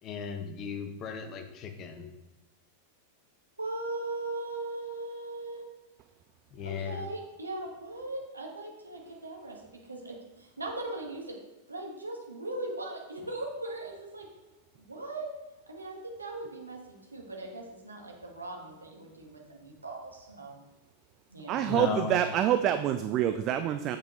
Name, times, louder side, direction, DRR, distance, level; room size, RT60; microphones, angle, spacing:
voice 1, 0.0-2.1 6.5-7.1 21.7-22.2, left 6 dB, 35° left, 6 dB, 1.0 m, -35 dB
voice 2, 3.6-5.7 6.6-11.4 11.7-14.3 14.8-15.3 15.7-20.6 21.3-21.7, right 2 dB, 80° right, 0 dB, 1.7 m, -39 dB
voice 3, 21.5-24.0, right 10 dB, 35° right, 9 dB, 0.4 m, -26 dB
8.6 x 7.5 x 3.2 m, 1.1 s
figure-of-eight pair, 90°, 0 cm